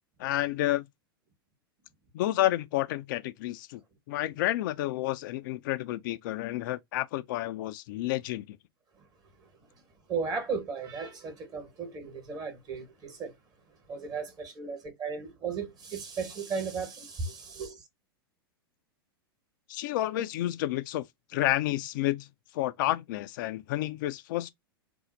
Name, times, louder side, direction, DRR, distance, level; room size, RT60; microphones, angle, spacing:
voice 1, 0.2-0.8 2.1-3.8 4.1-8.6 19.7-21.0 21.3-22.3 22.5-24.5, left 15 dB, 55° left, 0.4 m, -30 dB
voice 2, 10.1-13.3 13.9-17.8, right 5 dB, 30° right, 1.2 m, -35 dB
2.5 x 2.0 x 3.9 m
hypercardioid pair, 100°, 13 cm